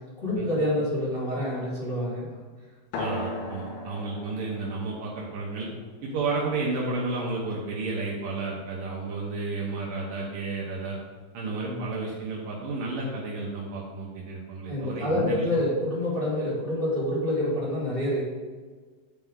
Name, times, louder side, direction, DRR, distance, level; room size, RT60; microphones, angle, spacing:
voice 1, 0.2-2.3 11.6-11.9 14.7-18.2, left 1 dB, 40° left, -10 dB, 0.7 m, -27 dB
sound 1, 2.9-8.0, left 1 dB, 80° left, 3.5 m, -38 dB
voice 2, 3.0-5.7 6.0-11.0 11.3-15.5, right 3 dB, 90° right, -4 dB, 1.9 m, -32 dB
11.0 x 4.5 x 3.7 m, 1.4 s
omnidirectional pair, 5.5 m